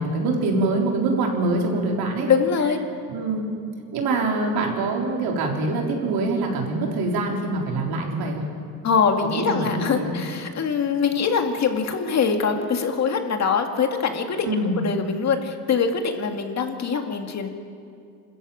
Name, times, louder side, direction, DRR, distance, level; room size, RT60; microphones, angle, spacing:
voice 1, 0.0-2.3 3.1-3.5 3.9-8.4 9.4-10.2 14.5-14.8, right 2 dB, 80° right, 0 dB, 4.0 m, -24 dB
voice 2, 2.3-2.8 8.8-14.5 14.8-17.5, left 6 dB, 45° left, 4 dB, 2.2 m, -23 dB
26.5 x 14.0 x 8.6 m, 2.5 s
cardioid pair, 115°, 36 cm